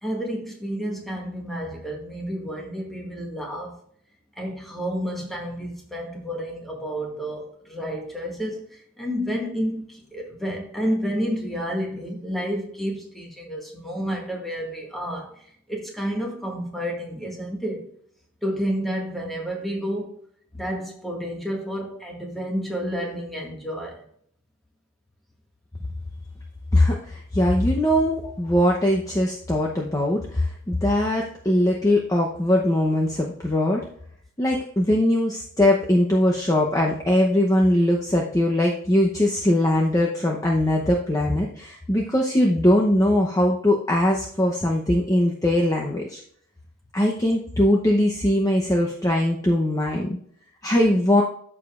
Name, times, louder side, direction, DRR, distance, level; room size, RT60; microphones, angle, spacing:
voice 1, 0.0-3.8 4.4-17.9 18.4-20.2 20.5-24.0 28.2-28.3, equal, ahead, 1.7 m, -30 dB
voice 2, 26.7-33.8 34.4-46.2 46.9-50.2 50.6-51.2, left 1 dB, 15° left, 0.8 m, -21 dB
13.5 x 4.9 x 2.5 m
head